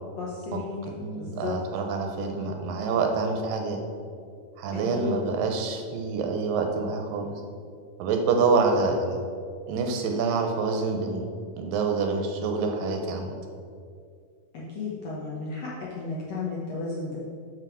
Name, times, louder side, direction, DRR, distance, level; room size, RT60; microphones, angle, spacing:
voice 1, 0.2-0.8 1.1-1.6 4.7-5.2 14.5-17.2, left 4 dB, 65° left, -5 dB, 1.6 m, -34 dB
voice 2, 0.9-3.8 4.6-7.3 8.0-9.2 9.7-11.3 11.6-13.4, right 4 dB, 75° right, 3 dB, 2.3 m, -26 dB
7.0 x 6.5 x 6.1 m, 2.3 s
omnidirectional pair, 4.2 m